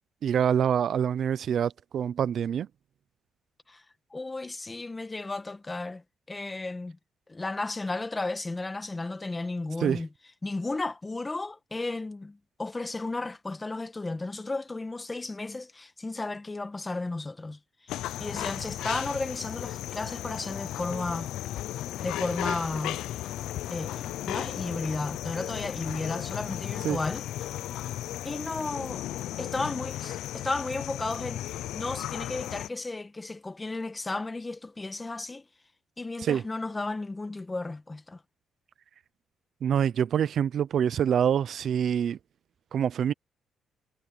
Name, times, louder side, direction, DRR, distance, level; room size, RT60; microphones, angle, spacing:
voice 1, 0.2-2.7 9.8-10.0 26.8-27.0 36.2-36.4 39.6-42.2 42.7-43.1, right 8 dB, 60° right, 0.6 m, -25 dB
voice 2, 4.1-7.0 7.3-10.1 10.4-21.3 22.0-23.0 23.7-27.2 28.2-29.1 29.4-35.4 36.0-38.2, left 2 dB, 20° left, 1.8 m, -34 dB
sound 1, 17.9-32.7, left 13 dB, 85° left, 0.7 m, -35 dB
cardioid pair, 90°, 0 cm